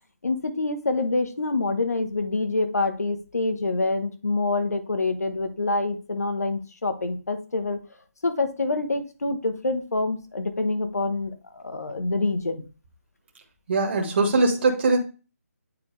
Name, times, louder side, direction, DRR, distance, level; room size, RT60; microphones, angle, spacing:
voice 1, 0.2-7.8 8.2-12.6, left 3 dB, 90° left, 7 dB, 1.4 m, -26 dB
voice 2, 13.7-15.0, right 3 dB, 45° right, 1 dB, 1.6 m, -21 dB
9.2 x 4.1 x 3.3 m, 0.33 s
hypercardioid pair, 165°, 8 cm